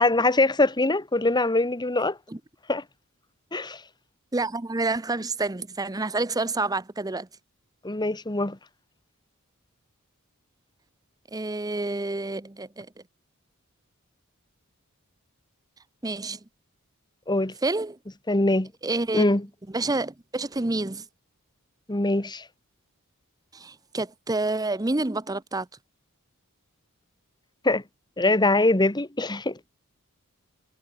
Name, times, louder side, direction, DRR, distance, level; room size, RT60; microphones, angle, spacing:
voice 1, 0.0-2.2 2.7-2.8 3.5-3.8 7.8-8.6 17.3-17.5 18.3-18.7 19.1-19.5 21.9-22.4 27.6-27.8 28.2-29.7, left 2 dB, 20° left, 1.5 m, -23 dB
voice 2, 4.3-7.3 11.3-12.9 16.0-16.4 17.6-18.0 18.8-19.3 19.7-21.0 23.5-25.7, right 2 dB, 15° right, 0.8 m, -28 dB
head